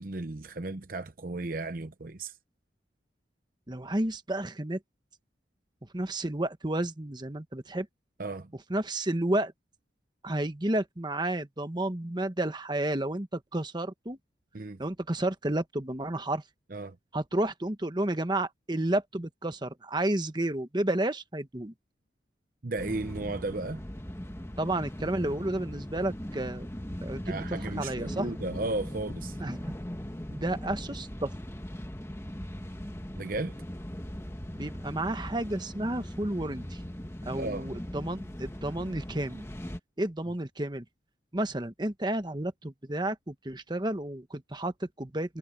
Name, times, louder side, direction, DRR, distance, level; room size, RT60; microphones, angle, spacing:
voice 1, 0.0-2.3 8.2-8.5 14.5-14.8 16.7-17.0 22.6-23.8 27.2-29.4 33.2-33.6 37.4-37.7, right 2 dB, 50° right, 0.8 m, -35 dB
voice 2, 3.7-4.8 5.9-7.9 8.7-9.5 10.2-14.2 14.8-16.4 17.1-21.7 24.6-26.7 27.0-28.3 29.4-29.7 30.3-31.3 34.5-36.8 37.3-39.4 40.0-40.8 41.3-45.4, right 1 dB, 25° right, 1.2 m, -31 dB
sound 1, 22.8-39.8, equal, 15° left, 1.3 m, -39 dB
head